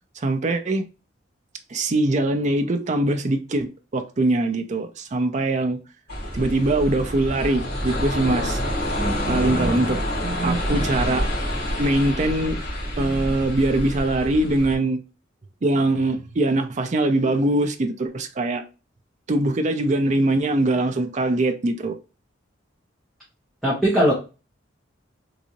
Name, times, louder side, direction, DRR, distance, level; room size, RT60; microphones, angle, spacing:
voice 1, 0.2-0.8 1.7-3.7 3.9-5.8 6.3-8.6 9.2-11.3 11.8-12.6 13.0-15.0 15.6-18.6 19.3-21.9, right 2 dB, 40° right, 0.5 m, -22 dB
sound 1, 6.1-14.7, equal, 55° left, 1.8 m, -27 dB
voice 2, 9.0-9.8 23.6-24.1, equal, ahead, 1.0 m, -22 dB
3.8 x 2.6 x 2.9 m
head